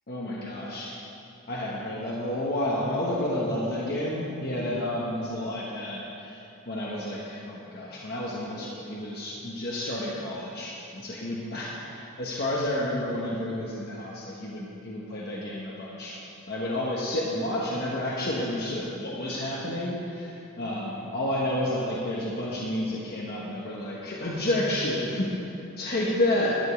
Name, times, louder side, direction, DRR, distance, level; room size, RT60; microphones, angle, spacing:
voice 1, 0.1-0.9 1.5-16.2 16.5-25.5 25.8-26.6, left 1 dB, 50° left, -5 dB, 1.3 m, -30 dB
12.0 x 5.3 x 8.8 m, 2.8 s
head